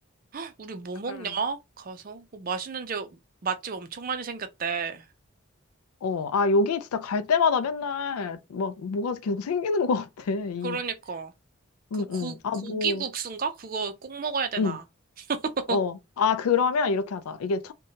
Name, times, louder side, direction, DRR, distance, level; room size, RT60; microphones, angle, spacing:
voice 1, 0.3-5.0 10.6-11.3 12.1-12.4 12.6-14.8 15.2-15.4 15.7-15.8, right 5 dB, 40° right, 0.4 m, -32 dB
voice 2, 6.0-10.8 11.9-13.0 14.6-14.8 15.7-17.7, left 4 dB, 85° left, 0.4 m, -26 dB
2.8 x 2.2 x 2.7 m
head